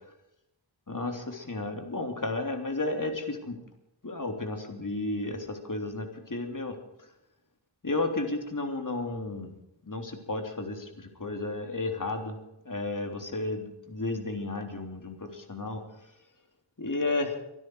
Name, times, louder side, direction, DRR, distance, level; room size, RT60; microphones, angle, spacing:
voice 1, 0.9-3.6 4.0-6.7 7.8-9.5 9.9-12.3 12.6-15.8 16.8-17.3, left 2 dB, 40° left, 5 dB, 3.4 m, -33 dB
23.5 x 12.5 x 4.8 m, 0.86 s
wide cardioid pair, 75°, 49 cm